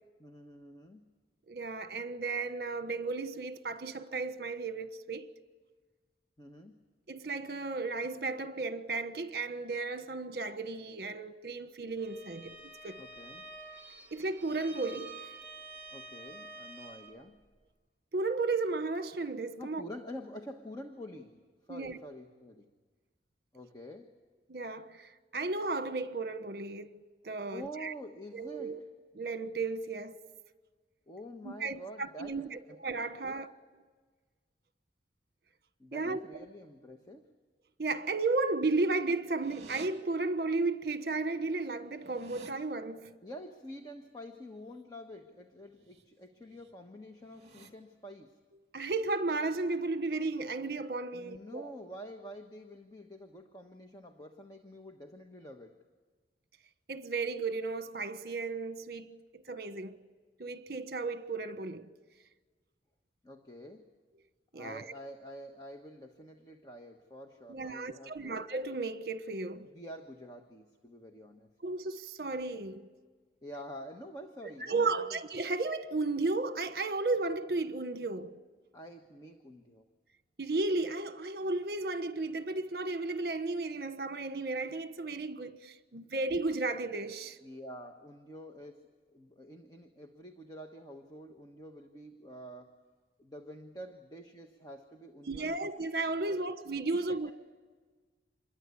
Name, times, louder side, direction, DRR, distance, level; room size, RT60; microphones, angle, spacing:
voice 1, 0.2-1.0 6.4-6.8 13.0-13.4 15.9-17.4 19.6-21.4 21.7-22.7 23.5-24.1 27.5-28.9 31.1-32.8 33.2-33.4 35.8-37.3 43.2-48.4 51.1-55.8 63.2-63.9 64.5-68.5 69.6-71.5 73.4-75.2 78.7-79.9 87.4-92.7 93.2-95.6 96.3-96.4 97.1-97.3, equal, 20° left, 1.3 m, -47 dB
voice 2, 1.5-5.3 7.1-12.6 12.8-13.0 14.1-15.2 18.1-19.8 21.7-22.0 24.5-27.0 27.2-27.9 28.3-28.8 29.1-30.2 31.4-33.5 35.9-36.2 37.8-43.2 48.7-51.7 56.9-59.9 60.4-61.9 64.5-64.8 67.5-69.7 71.6-72.8 74.4-78.3 80.4-87.4 95.3-97.3, right 3 dB, 55° right, 1.2 m, -34 dB
Bowed string instrument, 12.0-17.2, right 3 dB, 10° right, 2.9 m, -49 dB
sound 1, 39.4-39.9 41.1-41.2 41.5-42.5 45.7-46.0 46.4-46.7 47.2-47.7, right 4 dB, 35° right, 2.5 m, -52 dB
27.0 x 22.0 x 8.5 m
head